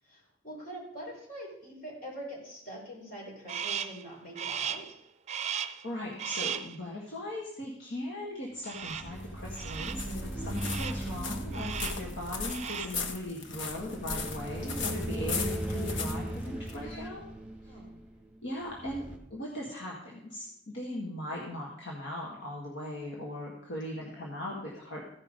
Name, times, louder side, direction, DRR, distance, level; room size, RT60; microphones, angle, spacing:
voice 1, 0.0-5.0 10.3-10.7 17.6-18.0 23.9-24.3, right 1 dB, 50° left, -3 dB, 4.7 m, -45 dB
Crow, 3.5-4.0 4.4-4.9 5.3-5.9 6.2-6.8 8.7-9.2 9.6-10.1 10.5-11.1 11.5-12.1 12.4-13.0, right 8 dB, 35° right, 0.5 m, -36 dB
voice 2, 5.4-17.2 17.6-17.7 18.4-19.0 19.3-25.0, left 1 dB, 70° left, -3 dB, 1.9 m, -39 dB
sound 1, 8.8-19.2, right 1 dB, 5° right, 1.6 m, -38 dB
sound 2, 8.9-17.1, left 5 dB, 85° left, 1.1 m, -39 dB
15.5 x 5.4 x 5.2 m, 0.73 s
head